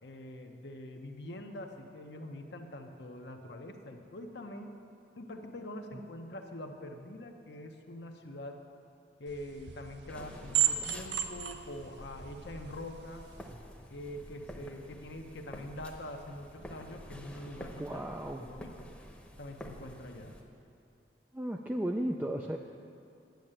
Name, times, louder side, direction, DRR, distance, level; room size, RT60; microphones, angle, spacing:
voice 1, 0.0-4.7 5.2-8.6 9.2-13.3 13.9-18.1 18.4-18.9 19.4-20.4, left 1 dB, 75° left, 3 dB, 0.9 m, -44 dB
sound 1, 9.3-13.5, right 10 dB, 80° right, 0.7 m, -35 dB
sound 2, 10.1-20.4, equal, 5° left, 0.9 m, -49 dB
voice 2, 17.8-18.5 21.3-22.6, right 1 dB, 10° right, 2 dB, 0.3 m, -34 dB
10.5 x 6.7 x 8.8 m, 2.6 s
head